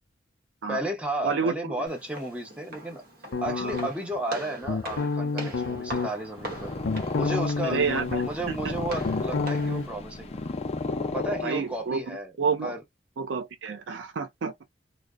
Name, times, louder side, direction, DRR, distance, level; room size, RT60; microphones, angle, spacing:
voice 1, 0.7-3.0 3.4-6.8 7.1-10.4 11.1-12.3 12.6-12.8, right 1 dB, 5° right, 0.7 m, -33 dB
voice 2, 1.2-1.5 3.5-3.8 7.6-8.2 8.5-8.7 11.4-12.0 12.4-12.7 13.2-14.5, right 5 dB, 85° right, 0.5 m, -29 dB
Walk footsteps, 1.9-9.9, right 1 dB, 55° right, 0.9 m, -42 dB
sound 1, 3.3-4.2 4.6-6.1 6.6-8.5 8.8-9.8, left 4 dB, 85° left, 0.5 m, -29 dB
Purr, 6.2-11.9, left 3 dB, 35° left, 0.4 m, -33 dB
2.6 x 2.0 x 2.4 m
head